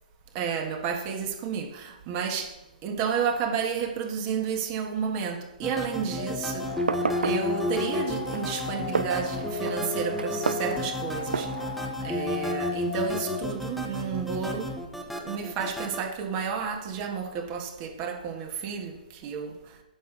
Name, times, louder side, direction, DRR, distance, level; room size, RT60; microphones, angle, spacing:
voice 1, 0.3-2.5 2.8-6.7 7.2-11.5 12.0-14.7 15.2-18.9 19.2-19.6, right 6 dB, 30° right, 4 dB, 1.5 m, -31 dB
sound 1, 5.6-16.0, left 1 dB, ahead, 1.1 m, -32 dB
sound 2, 6.2-13.5, left 9 dB, 55° left, 0.6 m, -37 dB
Fireworks, 6.7-11.9, right 5 dB, 85° right, 0.4 m, -33 dB
9.1 x 6.4 x 6.1 m, 0.93 s
hypercardioid pair, 140°, 5 cm